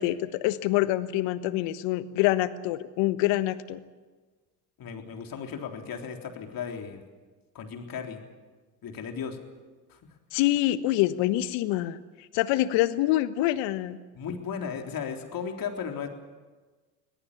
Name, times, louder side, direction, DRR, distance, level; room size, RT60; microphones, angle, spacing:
voice 1, 0.0-3.8 10.3-12.0 12.3-14.0, left 15 dB, 65° left, 13 dB, 1.4 m, -26 dB
voice 2, 4.8-7.0 7.5-8.2 8.8-9.4 9.9-10.0 14.1-16.1, left 6 dB, 45° left, 3 dB, 3.7 m, -35 dB
24.0 x 18.0 x 8.6 m, 1.3 s
hypercardioid pair, 65°, 48 cm